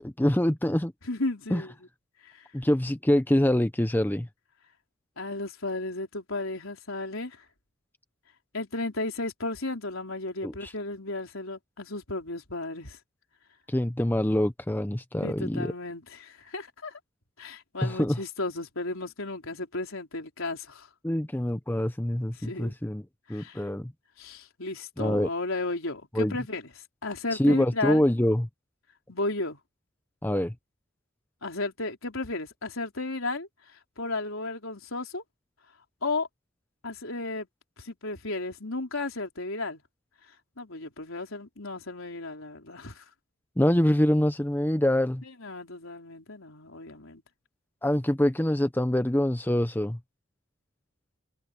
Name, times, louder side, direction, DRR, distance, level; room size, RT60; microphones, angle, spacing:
voice 1, 0.0-0.9 1.5-1.6 2.5-4.3 10.4-10.7 13.7-15.7 17.8-18.2 21.0-23.0 23.3-23.9 25.0-25.3 26.1-26.4 27.3-28.5 30.2-30.5 43.6-45.2 47.8-50.0, left 1 dB, 10° left, 0.6 m, -25 dB
voice 2, 1.1-1.7 2.2-2.5 5.2-7.4 8.5-13.0 15.2-17.0 17.4-20.9 22.4-22.8 23.3-23.7 24.2-26.6 27.0-28.0 29.1-29.6 31.4-35.2 36.0-36.3 36.8-37.5 37.8-39.8 40.6-43.0 45.4-47.2, left 2 dB, 75° left, 3.9 m, -34 dB
head